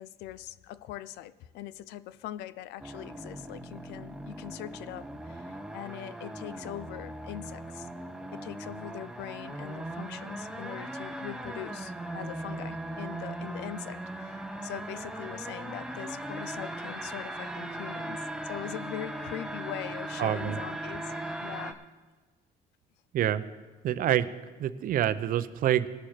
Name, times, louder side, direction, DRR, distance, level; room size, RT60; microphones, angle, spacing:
voice 1, 0.0-7.9 8.3-21.1 21.4-21.8, left 13 dB, 85° left, 17 dB, 0.5 m, -42 dB
sound 1, 2.8-21.7, right 1 dB, 5° right, 0.7 m, -39 dB
voice 2, 20.2-20.6 23.1-23.4 23.8-25.9, right 11 dB, 55° right, 13 dB, 0.6 m, -27 dB
19.0 x 6.5 x 4.4 m, 1.3 s
cardioid pair, 110°, 17 cm